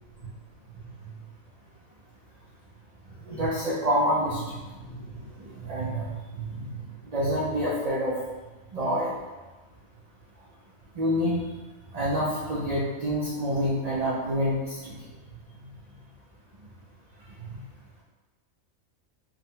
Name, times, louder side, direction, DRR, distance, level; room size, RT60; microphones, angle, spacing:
voice 1, 3.2-6.8 7.1-8.2 8.7-9.1 10.9-11.4 11.9-14.9 15.6-15.7 17.5-17.6, equal, 50° right, -6 dB, 0.5 m, -28 dB
4.6 x 2.2 x 3.7 m, 1.2 s
omnidirectional pair, 1.4 m